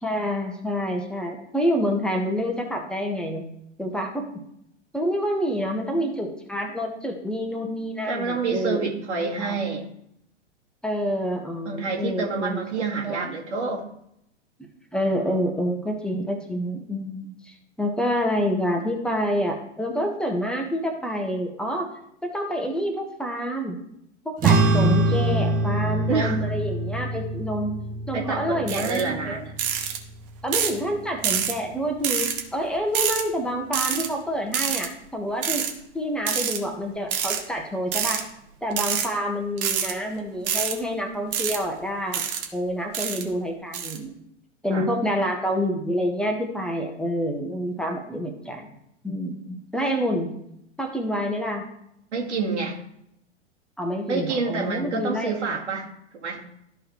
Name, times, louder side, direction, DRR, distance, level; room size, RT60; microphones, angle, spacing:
voice 1, 0.0-3.5 3.8-4.3 4.9-8.9 9.2-9.6 10.8-13.3 14.9-21.9 22.2-23.8 24.2-27.8 28.1-29.4 30.4-35.7 35.9-38.2 38.6-44.1 44.6-48.7 49.0-50.3 50.8-51.6 53.8-55.5, equal, ahead, 2 dB, 1.3 m, -28 dB
voice 2, 8.1-9.9 11.7-13.9 26.1-26.4 28.1-29.5 44.7-44.9 52.1-52.8 54.1-56.4, right 4 dB, 70° right, -1 dB, 2.0 m, -28 dB
sound 1, 24.4-31.1, right 2 dB, 25° right, 0.9 m, -24 dB
sound 2, 28.7-29.0 29.6-30.0 30.5-30.8 31.2-31.5 32.0-32.4 32.9-33.2 33.7-34.1 34.5-34.9 35.4-35.7 36.3-36.6 37.1-37.4 37.9-38.2 38.7-39.1 39.6-39.9 40.5-40.7 41.3-41.6 42.1-42.5 42.9-43.2 43.7-44.0, right 8 dB, 45° right, 1.4 m, -26 dB
13.5 x 4.9 x 3.1 m, 0.76 s
figure-of-eight pair, 105°, 36 cm